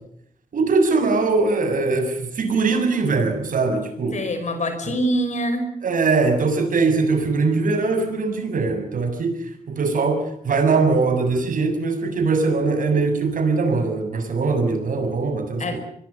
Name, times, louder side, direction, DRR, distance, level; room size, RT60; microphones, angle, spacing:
voice 1, 0.5-4.2 5.8-9.4 9.7-15.8, right 4 dB, 70° right, 7 dB, 7.0 m, -21 dB
voice 2, 4.1-5.7 15.6-15.8, equal, 55° left, 7 dB, 5.4 m, -24 dB
25.0 x 22.5 x 7.1 m, 0.69 s
cardioid pair, 100°, 15 cm